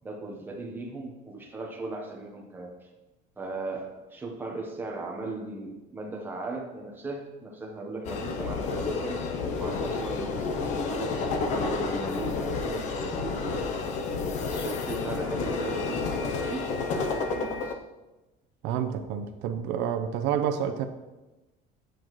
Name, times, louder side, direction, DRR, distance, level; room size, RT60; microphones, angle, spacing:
voice 1, 0.0-2.9 3.4-13.7 14.4-17.8, right 2 dB, 10° right, 1 dB, 1.0 m, -38 dB
sound 1, 8.0-17.7, left 4 dB, 40° left, 0.7 m, -30 dB
voice 2, 18.6-20.9, right 8 dB, 75° right, 7 dB, 0.7 m, -29 dB
8.6 x 7.8 x 3.1 m, 1.1 s
cardioid pair, 175°, 18 cm